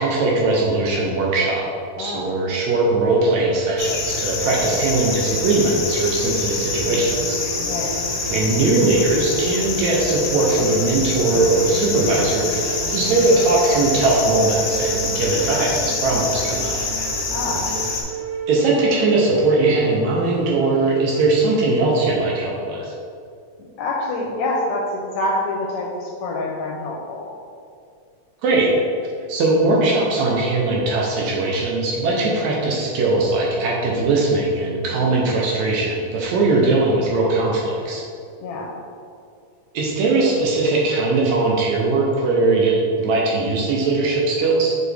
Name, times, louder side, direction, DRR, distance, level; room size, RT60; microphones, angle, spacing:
voice 1, 0.0-1.7 2.0-7.4 8.3-16.8 18.5-22.9 28.4-28.7 29.3-38.0 39.7-44.8, right 2 dB, 70° right, -2 dB, 1.9 m, -20 dB
voice 2, 2.0-2.4 4.5-4.7 7.7-7.9 17.3-17.7 23.8-27.3 34.9-35.2 38.4-38.7, left 2 dB, 75° left, -1 dB, 1.8 m, -26 dB
sound 1, 3.1-21.6, right 4 dB, 85° right, 2.4 m, -32 dB
sound 2, 3.8-18.0, left 3 dB, 60° left, 1.5 m, -26 dB
sound 3, 6.5-17.9, right 2 dB, 55° right, 2.4 m, -35 dB
6.3 x 4.9 x 3.4 m, 2.3 s
omnidirectional pair, 3.6 m